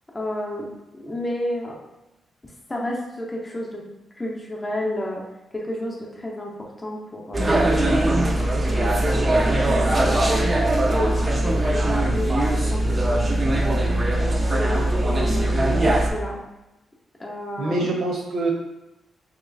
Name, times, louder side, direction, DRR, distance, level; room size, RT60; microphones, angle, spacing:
voice 1, 0.1-1.8 2.4-3.8 4.2-5.2 5.5-8.9 9.2-10.6 10.9-13.8 14.4-16.4 17.2-17.9, left 1 dB, 15° left, -2 dB, 0.7 m, -32 dB
sound 1, 7.3-16.1, right 1 dB, 20° right, 0.4 m, -20 dB
voice 2, 17.6-18.5, right 2 dB, 70° right, 0 dB, 0.8 m, -25 dB
3.1 x 2.9 x 3.9 m, 0.98 s
wide cardioid pair, 150°, 0 cm